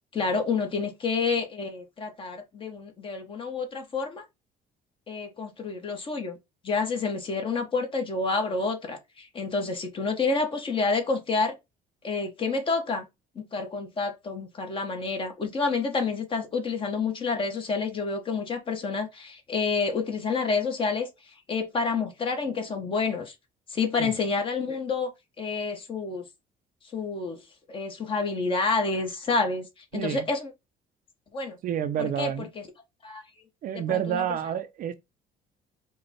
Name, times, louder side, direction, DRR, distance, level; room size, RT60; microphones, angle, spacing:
voice 1, 0.1-4.2 5.1-6.4 6.6-11.5 12.0-13.1 13.3-21.1 21.5-23.3 23.7-25.1 25.4-26.2 26.9-27.4 27.7-29.7 29.9-30.5 31.3-31.6 32.0-32.6 33.0-33.4 33.7-34.3, left 4 dB, 30° left, 1.2 m, -29 dB
voice 2, 29.9-30.3 31.6-32.5 33.6-34.9, right 9 dB, 55° right, 0.6 m, -29 dB
5.3 x 2.3 x 4.3 m
cardioid pair, 140°, 17 cm